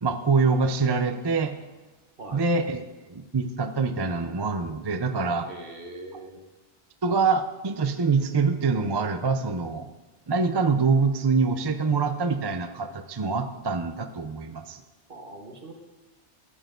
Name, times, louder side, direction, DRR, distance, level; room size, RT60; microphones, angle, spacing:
voice 1, 0.0-1.5 2.3-2.8 3.1-5.5 7.0-9.9 10.3-14.8, right 4 dB, 35° right, 8 dB, 0.4 m, -25 dB
voice 2, 5.4-6.4 15.1-15.7, right 2 dB, 50° right, 3 dB, 1.6 m, -41 dB
14.5 x 9.0 x 3.8 m, 1.1 s
omnidirectional pair, 1.2 m